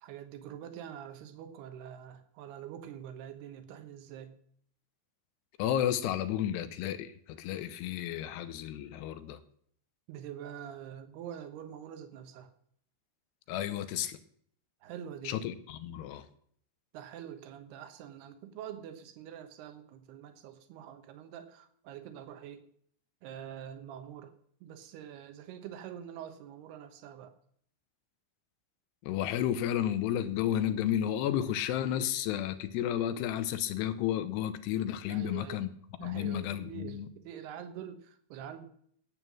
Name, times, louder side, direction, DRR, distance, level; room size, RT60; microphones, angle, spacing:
voice 1, 0.0-4.3 10.1-12.5 14.8-15.4 16.9-22.7 23.2-24.3 24.6-27.3 35.1-35.6 36.0-38.7, right 9 dB, 75° right, 7 dB, 3.1 m, -45 dB
voice 2, 5.6-9.4 13.5-14.2 15.2-16.3 29.0-35.7 36.0-37.1, left 11 dB, 85° left, 12 dB, 2.9 m, -32 dB
12.0 x 9.1 x 6.1 m, 0.63 s
omnidirectional pair, 4.8 m